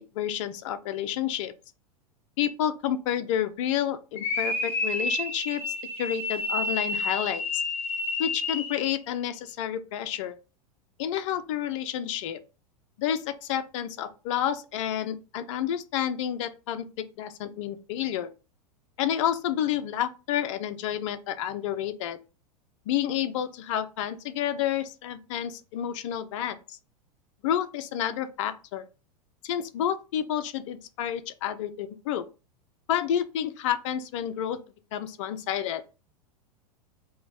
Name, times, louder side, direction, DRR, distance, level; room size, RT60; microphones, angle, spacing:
voice 1, 0.1-1.5 2.4-7.4 8.2-10.4 11.0-12.4 13.0-18.3 19.0-22.2 22.9-26.8 27.4-28.9 29.4-32.3 32.9-34.6 34.9-35.8, left 10 dB, 50° left, 0.5 m, -30 dB
sound 1, 4.2-8.9, left 2 dB, 30° left, 1.2 m, -30 dB
3.8 x 2.2 x 3.5 m
figure-of-eight pair, 90°, 20 cm